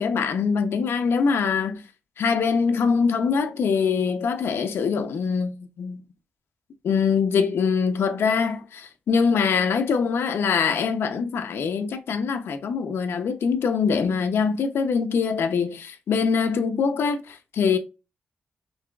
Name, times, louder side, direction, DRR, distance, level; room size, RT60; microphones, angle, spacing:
voice 1, 0.0-1.8 2.2-6.0 6.8-17.8, left 5 dB, 85° left, 0.7 m, -23 dB
5.6 x 3.3 x 2.3 m
wide cardioid pair, 140°, 4 cm